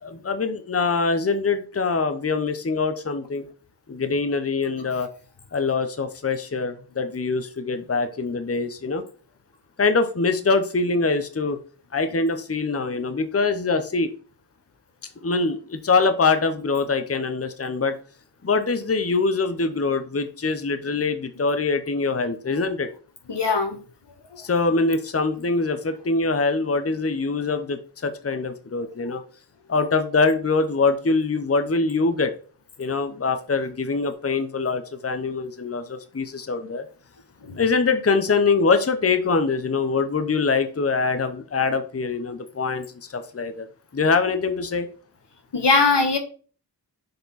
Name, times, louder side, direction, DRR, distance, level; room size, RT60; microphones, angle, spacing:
voice 1, 0.0-3.4 3.9-5.1 5.5-9.0 9.8-11.6 11.9-14.1 15.2-18.0 18.4-22.9 24.4-29.2 29.7-32.3 32.8-36.8 37.5-42.8 43.1-43.7 43.9-44.9, left 4 dB, 35° left, 10 dB, 0.7 m, -23 dB
voice 2, 23.3-23.8 45.5-46.2, left 3 dB, 85° left, 7 dB, 1.1 m, -19 dB
6.6 x 4.4 x 4.0 m, 0.41 s
wide cardioid pair, 40°, 41 cm